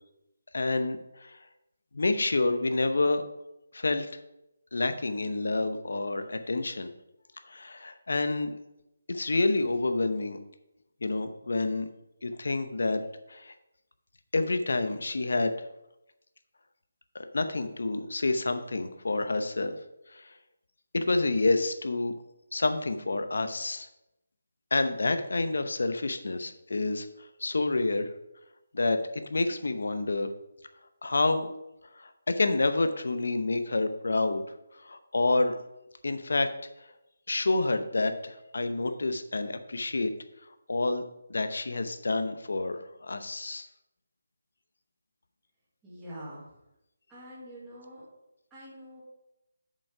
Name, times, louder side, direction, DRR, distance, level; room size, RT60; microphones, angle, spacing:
voice 1, 0.5-1.4 1.9-3.2 3.7-4.2 4.7-6.9 7.5-8.5 9.1-10.4 11.0-11.9 12.2-13.0 13.3-13.5 14.3-15.7 17.1-19.7 20.1-20.3 20.9-22.1 22.5-23.9 24.7-27.1 27.4-28.1 28.7-30.3 31.0-31.5 32.0-34.4 34.7-35.6 36.0-36.5 37.3-40.1 40.7-41.0 41.3-43.7, left 2 dB, 75° left, 9 dB, 0.8 m, -28 dB
voice 2, 45.8-46.6 47.1-48.1 48.5-49.0, equal, 5° right, -10 dB, 1.6 m, -45 dB
7.1 x 5.4 x 4.9 m, 0.88 s
hypercardioid pair, 170°, 0 cm